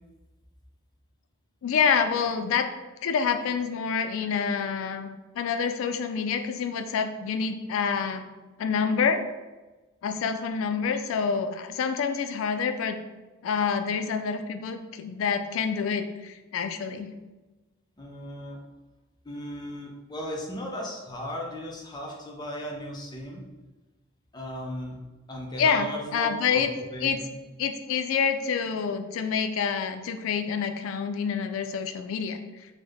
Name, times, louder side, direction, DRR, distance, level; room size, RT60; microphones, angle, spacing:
voice 1, 1.6-2.7 3.0-5.1 5.4-8.2 8.6-9.2 10.0-13.0 13.4-17.1 25.6-26.7 27.0-27.2 27.6-32.4, left 6 dB, 85° left, 7 dB, 0.3 m, -27 dB
voice 2, 18.0-18.6 19.2-23.4 24.3-25.0 25.3-26.6 26.9-27.3, equal, 20° left, -1 dB, 0.5 m, -36 dB
3.4 x 2.1 x 3.4 m, 1.2 s
head